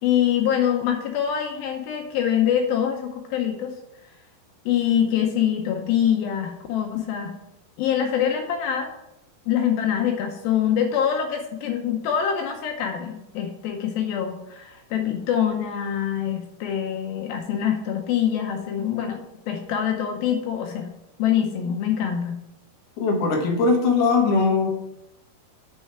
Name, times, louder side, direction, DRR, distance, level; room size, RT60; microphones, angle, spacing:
voice 1, 0.0-3.7 4.7-7.3 7.8-8.9 9.5-19.2 19.5-20.9 21.2-22.4, left 9 dB, 75° left, 3 dB, 2.5 m, -24 dB
voice 2, 23.0-24.7, left 4 dB, 55° left, 0 dB, 2.0 m, -20 dB
6.5 x 6.1 x 5.8 m, 0.87 s
omnidirectional pair, 4.5 m